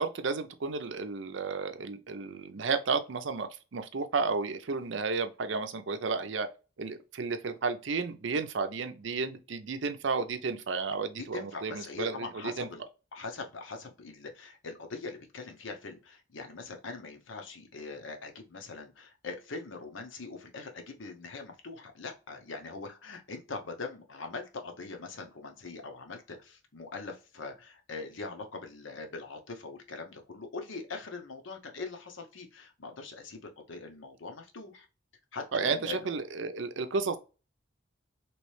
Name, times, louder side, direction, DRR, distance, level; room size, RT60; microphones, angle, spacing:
voice 1, 0.0-6.5 6.8-12.2 12.4-12.7 35.5-37.2, right 4 dB, 70° right, 0.5 m, -32 dB
voice 2, 11.2-12.8 13.1-34.9 35.3-36.1, left 4 dB, 75° left, 0.7 m, -42 dB
3.1 x 3.0 x 3.1 m
head